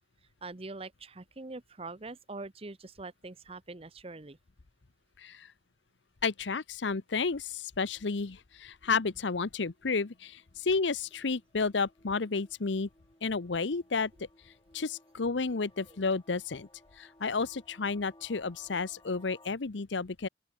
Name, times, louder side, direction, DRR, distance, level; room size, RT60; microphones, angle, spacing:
voice 1, 0.4-4.4 15.9-16.1, right 3 dB, 30° right, 0.9 m, -44 dB
voice 2, 6.2-12.9 13.2-14.1 14.7-16.7 17.0-20.3, left 4 dB, 80° left, 0.8 m, -31 dB
sound 1, 7.5-19.5, left 1 dB, 20° left, 6.2 m, -62 dB
open air
head